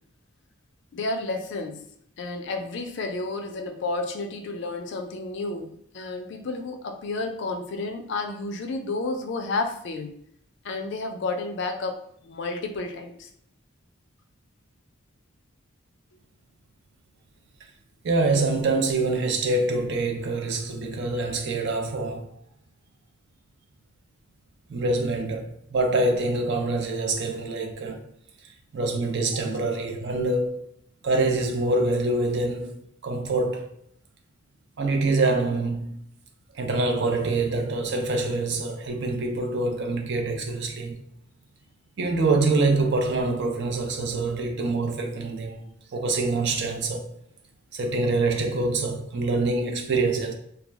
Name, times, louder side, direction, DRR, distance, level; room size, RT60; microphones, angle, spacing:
voice 1, 0.9-1.9 2.2-10.2 10.6-13.3, left 3 dB, 55° left, 0.3 m, -31 dB
voice 2, 18.0-22.3 24.7-28.0 28.7-30.7 31.0-33.6 34.8-36.0 36.6-41.0 42.0-45.6 45.9-47.1 47.7-50.3, right 2 dB, 55° right, 0.4 m, -25 dB
2.3 x 2.1 x 3.3 m
head